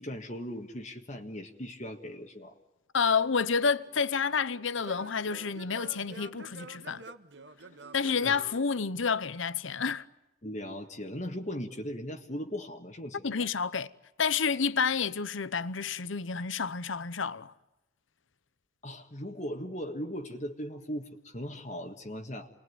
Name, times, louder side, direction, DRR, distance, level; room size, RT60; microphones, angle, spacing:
voice 1, 0.0-2.5 8.2-8.3 10.4-13.5 18.8-22.5, equal, 35° left, 1.7 m, -38 dB
voice 2, 2.9-7.0 7.9-10.1 13.2-13.9 14.2-17.5, left 5 dB, 80° left, 0.9 m, -29 dB
Singing / Plucked string instrument, 3.5-9.4, right 2 dB, 65° right, 1.6 m, -49 dB
29.0 x 21.0 x 9.6 m
head